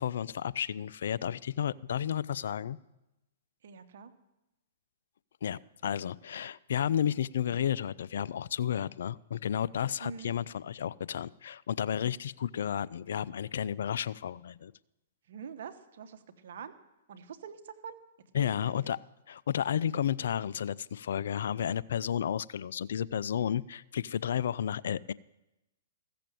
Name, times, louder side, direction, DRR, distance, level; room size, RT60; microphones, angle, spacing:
voice 1, 0.0-2.8 5.4-14.7 18.3-19.0 19.3-25.1, left 9 dB, 70° left, 19 dB, 0.4 m, -32 dB
voice 2, 3.6-4.1 10.0-10.3 15.3-16.7 17.1-18.0 18.3-18.7, right 6 dB, 65° right, 9 dB, 1.2 m, -45 dB
15.0 x 6.8 x 7.6 m, 0.96 s
hypercardioid pair, 125°, 0 cm